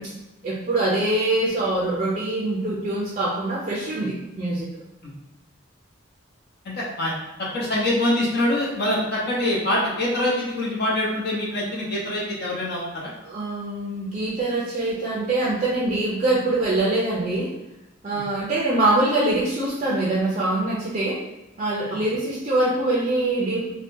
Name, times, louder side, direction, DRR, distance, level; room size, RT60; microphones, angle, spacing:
voice 1, 0.4-4.7 13.2-17.5 18.0-21.2 21.6-23.7, right 2 dB, 35° right, -6 dB, 0.5 m, -24 dB
voice 2, 6.6-7.1 7.5-13.1, left 1 dB, 55° left, -5 dB, 0.9 m, -24 dB
3.5 x 2.2 x 2.6 m, 0.95 s
head